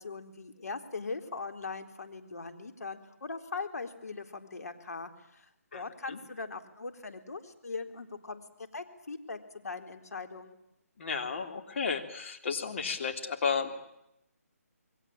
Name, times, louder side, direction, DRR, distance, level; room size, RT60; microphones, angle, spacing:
voice 1, 0.0-8.4 8.7-10.6, left 4 dB, 75° left, 5 dB, 3.9 m, -40 dB
voice 2, 11.0-13.8, left 5 dB, 50° left, 4 dB, 3.4 m, -33 dB
28.5 x 22.5 x 8.8 m, 0.83 s
figure-of-eight pair, 155°, 9 cm